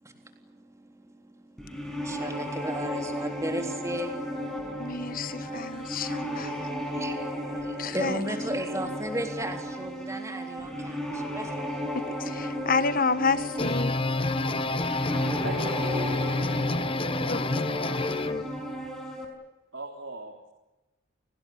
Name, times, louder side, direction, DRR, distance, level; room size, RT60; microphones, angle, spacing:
voice 1, 0.0-5.9 6.6-11.7, right 1 dB, 15° right, 4 dB, 3.5 m, -36 dB
sound 1, 1.6-19.3, equal, ahead, 5.6 m, -34 dB
voice 2, 4.8-6.6 7.8-8.3 11.9-14.0 17.3-17.7, left 4 dB, 40° left, 13 dB, 1.4 m, -30 dB
sound 2, 13.3-18.4, left 2 dB, 25° left, 1.0 m, -28 dB
voice 3, 15.4-16.4 19.7-20.5, right 1 dB, 65° right, 1 dB, 3.8 m, -38 dB
29.5 x 19.5 x 9.3 m, 1.0 s
head